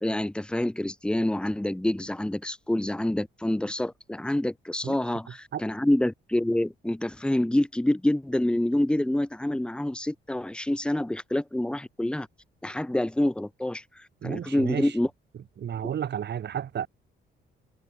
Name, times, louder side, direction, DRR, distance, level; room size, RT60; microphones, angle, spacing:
voice 1, 0.0-12.3 12.6-15.1, left 1 dB, 5° left, 1.3 m, -27 dB
voice 2, 14.2-14.9 15.6-16.9, right 9 dB, 60° right, 3.3 m, -32 dB
cardioid pair, 90°, 20 cm